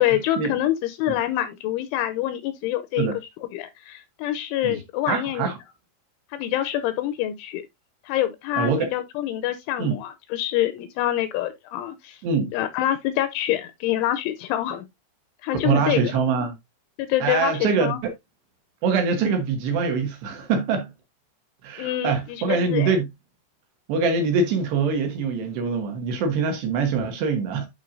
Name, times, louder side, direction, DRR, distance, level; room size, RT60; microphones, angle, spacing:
voice 1, 0.0-3.1 3.5-5.5 6.3-7.6 8.1-12.2 12.5-14.9 15.4-16.0 17.0-18.0 21.8-23.0, left 13 dB, 85° left, 2.8 m, -26 dB
voice 2, 5.1-5.5 8.6-8.9 9.8-10.0 12.2-12.5 15.6-16.5 17.2-18.1 18.8-20.9 21.6-23.1 23.9-27.7, right 5 dB, 70° right, 2.7 m, -24 dB
11.5 x 4.5 x 2.6 m
omnidirectional pair, 5.9 m